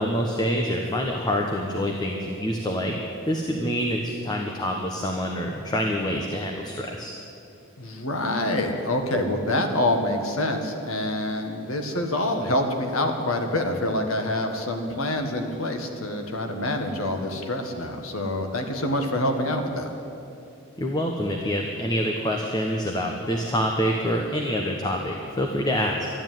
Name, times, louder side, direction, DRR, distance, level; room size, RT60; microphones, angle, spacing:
voice 1, 0.0-3.0 3.3-7.1 20.8-26.1, equal, 20° left, 1 dB, 1.0 m, -26 dB
voice 2, 7.8-19.9, left 1 dB, 80° left, 4 dB, 1.7 m, -26 dB
12.0 x 11.5 x 9.2 m, 2.7 s
head